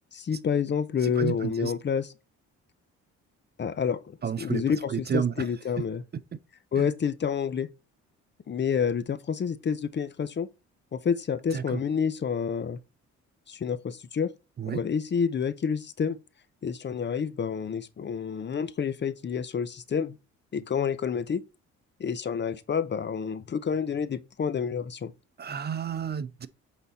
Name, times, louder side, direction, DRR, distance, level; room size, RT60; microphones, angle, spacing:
voice 1, 0.1-2.1 3.6-4.0 4.4-6.0 6.7-7.7 8.5-10.5 10.9-12.8 13.5-14.3 14.7-16.2 16.6-20.1 20.5-21.4 22.0-25.1, left 7 dB, 35° left, 0.7 m, -28 dB
voice 2, 1.0-1.7 4.2-5.5 5.8-5.9 6.8-6.9 11.5-11.8 14.6-14.8 25.4-26.5, right 7 dB, 35° right, 0.5 m, -31 dB
8.1 x 4.0 x 4.2 m
cardioid pair, 90°, 30 cm